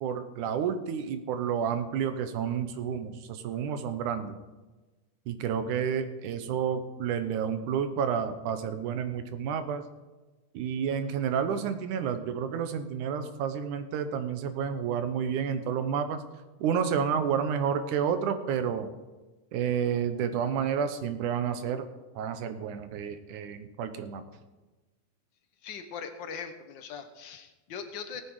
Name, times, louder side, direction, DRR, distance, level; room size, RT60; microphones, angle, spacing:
voice 1, 0.0-4.4 5.3-9.8 10.5-16.2 16.6-18.9 19.5-21.9 22.2-24.2, right 7 dB, 90° right, 9 dB, 2.5 m, -30 dB
voice 2, 25.6-28.2, left 6 dB, 65° left, 7 dB, 1.2 m, -40 dB
19.0 x 8.4 x 4.8 m, 1.2 s
omnidirectional pair, 3.4 m